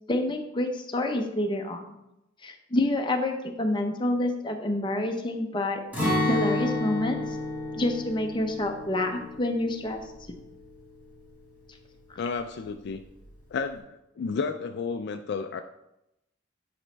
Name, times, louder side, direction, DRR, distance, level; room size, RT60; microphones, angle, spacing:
voice 1, 0.1-1.9 2.4-5.8 6.3-7.4 7.7-10.0 12.1-12.2, left 1 dB, 25° left, 3 dB, 0.8 m, -28 dB
Acoustic guitar, 5.9-11.8 12.1-12.3 12.8-13.3, left 2 dB, 5° right, 2.2 m, -31 dB
voice 2, 12.2-13.0 13.5-13.8 14.2-15.6, left 5 dB, 55° left, 8 dB, 0.3 m, -31 dB
9.2 x 5.0 x 3.3 m, 0.89 s
head